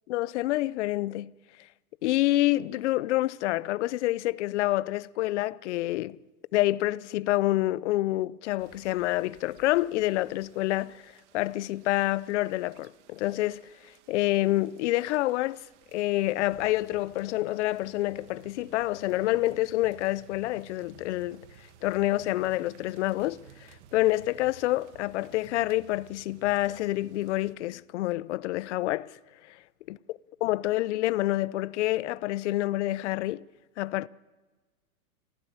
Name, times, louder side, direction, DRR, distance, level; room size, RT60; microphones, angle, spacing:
voice 1, 0.1-1.3 2.0-6.2 6.5-13.6 14.1-15.6 15.9-21.4 21.8-23.4 23.9-29.1 29.5-29.6 29.9-30.0 30.4-33.4 33.8-34.1, left 17 dB, 50° left, 0.7 m, -27 dB
sound 1, 8.6-27.6, right 9 dB, 50° right, 1.7 m, -56 dB
25.5 x 15.5 x 8.8 m
hypercardioid pair, 130°, 44 cm